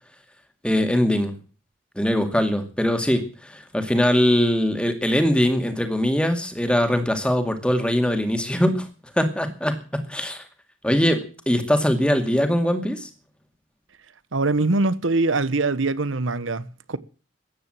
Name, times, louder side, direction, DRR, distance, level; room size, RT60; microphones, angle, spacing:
voice 1, 0.6-1.4 2.0-8.9 9.2-10.4 10.8-13.1, equal, 5° left, 2.2 m, -22 dB
voice 2, 14.3-17.0, right 3 dB, 90° right, 1.1 m, -23 dB
14.5 x 10.0 x 7.6 m
head